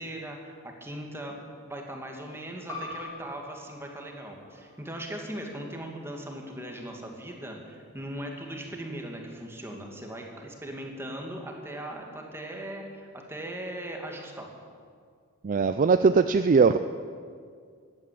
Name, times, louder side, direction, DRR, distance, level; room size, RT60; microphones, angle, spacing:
voice 1, 0.0-14.5, right 1 dB, 10° right, 1 dB, 2.2 m, -39 dB
sound 1, 2.7-7.8, left 2 dB, 15° left, 3.8 m, -46 dB
voice 2, 15.4-16.8, right 4 dB, 40° right, 10 dB, 0.4 m, -20 dB
15.0 x 11.5 x 8.5 m, 2.1 s
head